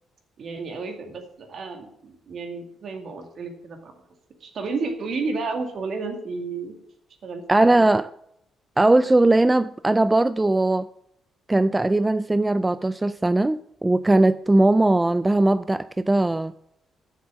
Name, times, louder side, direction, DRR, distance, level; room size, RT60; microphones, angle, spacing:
voice 1, 0.4-3.9 4.4-6.7 7.2-7.9, right 4 dB, 55° right, 2.2 m, -32 dB
voice 2, 7.5-8.1 8.8-10.9 11.5-16.5, right 2 dB, 15° right, 0.3 m, -19 dB
7.4 x 7.2 x 7.3 m
cardioid pair, 90°, 0 cm